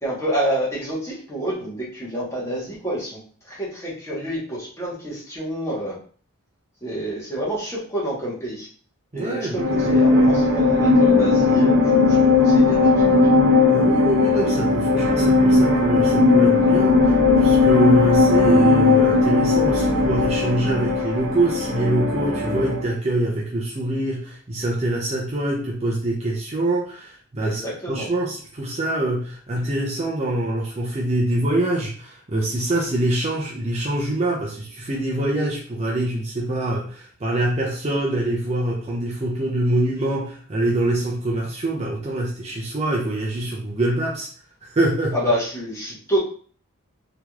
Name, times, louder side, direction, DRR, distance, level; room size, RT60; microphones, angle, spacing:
voice 1, 0.0-3.2 3.4-6.0 6.8-8.7 9.1-13.4 27.4-28.1 45.1-46.2, right 1 dB, 15° left, -6 dB, 1.1 m, -28 dB
voice 2, 9.1-10.1 13.7-27.6 27.9-44.3 44.6-45.2, right 1 dB, 30° right, -3 dB, 0.5 m, -25 dB
sound 1, 9.6-22.9, left 3 dB, 45° right, 1.1 m, -17 dB
3.4 x 3.0 x 2.3 m, 0.44 s
head